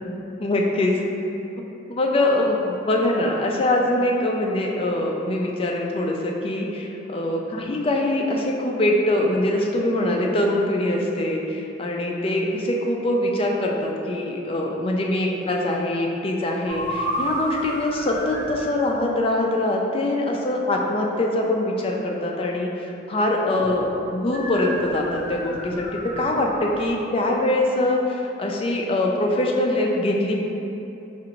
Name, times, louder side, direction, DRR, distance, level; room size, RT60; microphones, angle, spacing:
voice 1, 0.4-1.0 1.9-30.4, left 1 dB, 30° left, 0 dB, 0.3 m, -23 dB
sound 1, 16.7-18.7 24.3-27.0, equal, 60° right, 1.1 m, -31 dB
4.6 x 2.5 x 2.9 m, 2.9 s
head